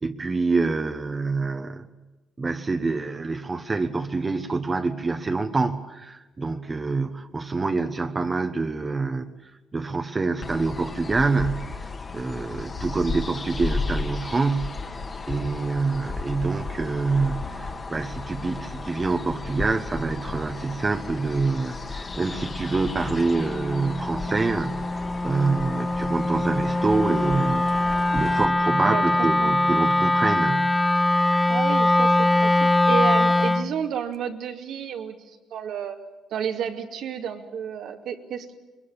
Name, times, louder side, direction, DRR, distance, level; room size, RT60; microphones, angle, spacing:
voice 1, 0.0-1.8 2.4-11.8 12.1-14.9 15.3-30.8 31.3-31.4, right 3 dB, 30° right, 6 dB, 1.2 m, -26 dB
sound 1, 10.4-28.5, left 3 dB, 35° left, 2.1 m, -34 dB
Wind instrument woodwind instrument, 22.1-33.7, left 2 dB, 15° left, 0.9 m, -23 dB
voice 2, 28.8-29.6 31.5-36.0 36.3-38.5, right 8 dB, 80° right, 3 dB, 2.5 m, -31 dB
22.0 x 21.0 x 8.8 m, 1.1 s
cardioid pair, 90°, 0 cm